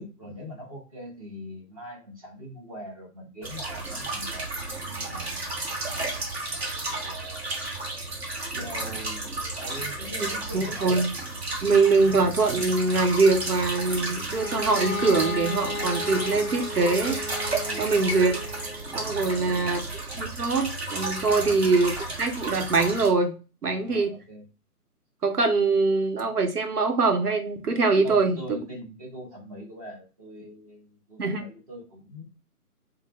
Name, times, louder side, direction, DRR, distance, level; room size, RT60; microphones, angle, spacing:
voice 1, 0.0-4.5 4.8-5.6 6.9-7.8 8.5-9.3 9.6-11.0 17.6-17.9 19.2-19.9 21.3-21.6 23.8-24.4 28.0-32.2, equal, 25° right, -1 dB, 0.9 m, -42 dB
sound 1, 3.4-23.1, right 2 dB, 40° right, 1.2 m, -33 dB
voice 2, 10.2-11.1 11.6-17.2 17.8-18.4 18.9-19.8 20.1-23.3 23.6-24.1 25.2-28.4 31.2-31.4, right 3 dB, 70° right, 5 dB, 1.0 m, -23 dB
Bowed string instrument, 14.3-19.0, left 1 dB, 15° left, 0.8 m, -34 dB
3.5 x 2.1 x 3.4 m, 0.33 s
figure-of-eight pair, 150°, 47 cm